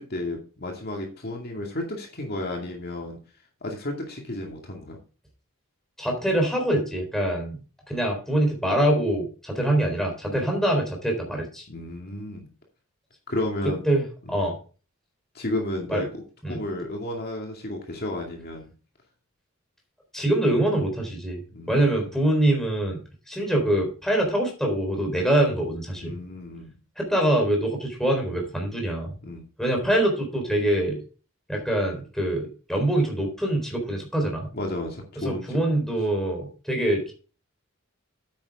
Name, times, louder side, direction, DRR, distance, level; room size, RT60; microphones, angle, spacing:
voice 1, 0.0-3.2 3.6-5.0 10.3-10.4 11.7-12.5 13.3-13.8 14.3-14.4 15.3-18.7 21.5-22.0 26.0-26.8 29.2-29.4 34.5-35.6, left 1 dB, 45° left, 1 dB, 2.3 m, -32 dB
voice 2, 6.0-7.6 7.9-11.7 13.9-14.0 14.3-14.5 15.9-16.0 16.4-16.6 20.1-21.4 21.7-23.0 23.3-26.1 27.0-29.1 29.6-31.0 31.5-34.5 35.2-37.1, right 1 dB, ahead, 1 dB, 4.0 m, -24 dB
9.6 x 9.0 x 3.6 m, 0.36 s
head